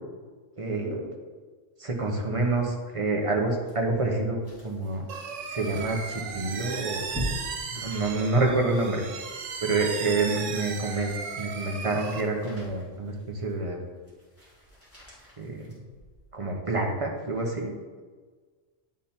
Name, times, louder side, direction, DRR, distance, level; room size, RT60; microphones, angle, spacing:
voice 1, 0.6-1.1 1.8-5.0 5.5-7.0 7.7-9.0 9.6-13.8 15.4-15.8 16.3-17.7, right 3 dB, 30° right, 0 dB, 0.9 m, -28 dB
sound 1, 3.7-16.3 16.8-16.9, equal, 10° left, 2.2 m, -43 dB
sound 2, 5.1-12.2, right 5 dB, 90° right, 1.1 m, -36 dB
9.9 x 3.6 x 4.4 m, 1.5 s
omnidirectional pair, 1.2 m